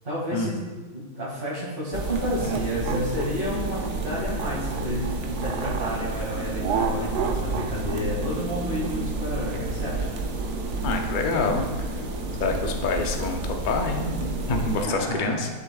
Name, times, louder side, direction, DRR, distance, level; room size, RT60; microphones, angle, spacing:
voice 1, 0.0-0.6 0.9-10.0 14.8-15.4, equal, 30° right, -10 dB, 2.2 m, -30 dB
sound 1, 1.9-14.8, right 2 dB, 60° right, 1.2 m, -30 dB
sound 2, 2.3-6.0 6.6-11.1, right 6 dB, 80° right, 1.2 m, -32 dB
voice 2, 10.8-11.9 12.4-15.5, left 3 dB, 50° left, 3 dB, 0.6 m, -27 dB
11.0 x 6.8 x 2.4 m, 1.3 s
omnidirectional pair, 1.8 m